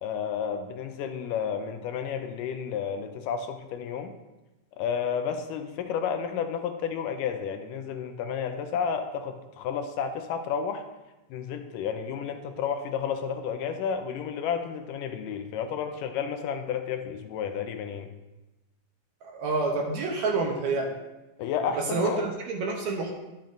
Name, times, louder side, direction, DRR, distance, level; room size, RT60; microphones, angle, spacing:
voice 1, 0.0-4.1 4.8-10.8 11.3-18.1 21.4-22.2, left 7 dB, 90° left, 7 dB, 2.3 m, -31 dB
voice 2, 19.2-21.0 21.8-23.1, right 3 dB, 70° right, 0 dB, 1.9 m, -28 dB
12.0 x 7.1 x 2.6 m, 1.1 s
omnidirectional pair, 3.6 m